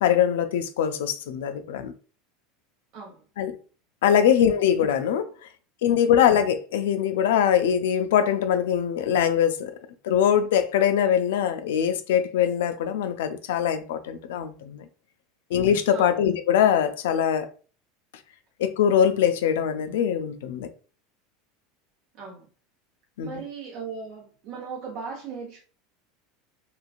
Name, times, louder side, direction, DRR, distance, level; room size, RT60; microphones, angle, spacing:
voice 1, 0.0-1.9 3.4-3.6 4.0-5.3 5.8-9.7 10.0-14.8 15.5-17.5 18.6-20.7 23.2-23.4, left 9 dB, 85° left, 0.3 m, -22 dB
voice 2, 2.9-3.2 15.9-16.2 22.1-22.5 23.2-25.6, right 5 dB, 55° right, 0.7 m, -37 dB
3.0 x 2.5 x 2.3 m
supercardioid pair, 125°, 0 cm